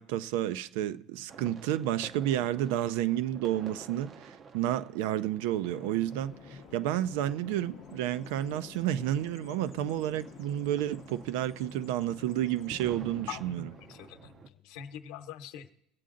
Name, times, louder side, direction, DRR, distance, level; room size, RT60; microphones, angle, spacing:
voice 1, 0.0-13.6, right 12 dB, 85° right, 0.5 m, -31 dB
sound 1, 1.3-14.5, right 5 dB, 25° right, 0.5 m, -51 dB
Bird vocalization bird call bird song, 5.7-14.0, left 9 dB, 40° left, 0.6 m, -50 dB
voice 2, 13.3-15.7, left 9 dB, 60° left, 0.9 m, -44 dB
23.0 x 8.4 x 3.8 m
cardioid pair, 180°, 0 cm